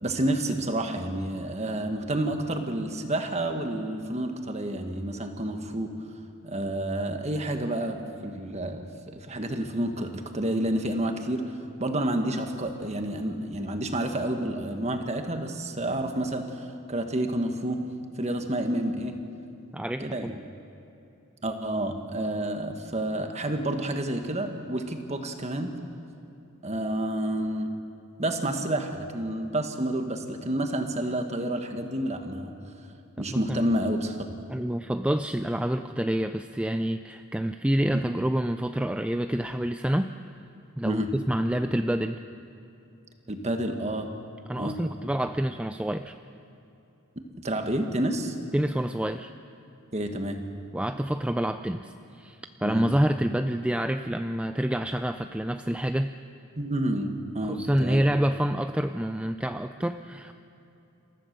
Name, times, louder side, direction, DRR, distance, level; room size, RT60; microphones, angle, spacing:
voice 1, 0.0-5.9 6.4-8.9 9.1-17.8 18.2-19.2 20.0-20.3 21.4-25.8 26.6-27.8 28.2-32.5 33.2-34.2 37.9-38.0 40.8-41.1 43.3-44.1 44.6-44.8 47.1-48.3 49.9-50.4 52.6-52.9 56.6-58.0, right 1 dB, 30° right, 5 dB, 1.5 m, -29 dB
voice 2, 19.7-20.3 33.3-33.7 34.5-40.1 40.8-42.2 44.5-46.1 48.5-49.3 50.7-56.1 57.4-60.3, right 1 dB, 5° right, 8 dB, 0.4 m, -27 dB
27.5 x 15.0 x 6.7 m, 2.9 s
head